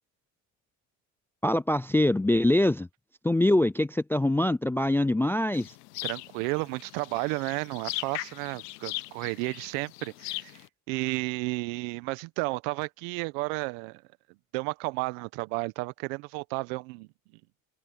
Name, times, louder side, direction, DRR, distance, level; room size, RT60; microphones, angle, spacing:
voice 1, 1.4-2.9 3.2-5.7, left 1 dB, 5° left, 0.4 m, -24 dB
sound 1, 5.5-10.7, left 22 dB, 85° left, 0.8 m, -39 dB
voice 2, 6.0-14.0 14.5-17.1, right 26 dB, 75° right, 1.3 m, -32 dB
open air
supercardioid pair, 85°, 47 cm